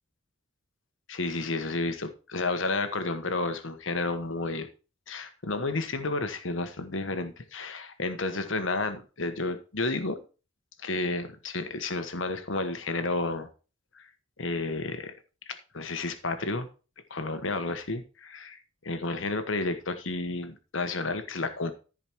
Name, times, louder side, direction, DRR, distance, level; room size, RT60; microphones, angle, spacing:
voice 1, 1.1-4.7 5.1-10.2 10.8-13.5 13.9-14.1 14.4-15.1 15.5-16.7 17.1-21.7, left 3 dB, 65° left, 9 dB, 1.2 m, -31 dB
14.0 x 5.0 x 4.6 m, 0.34 s
head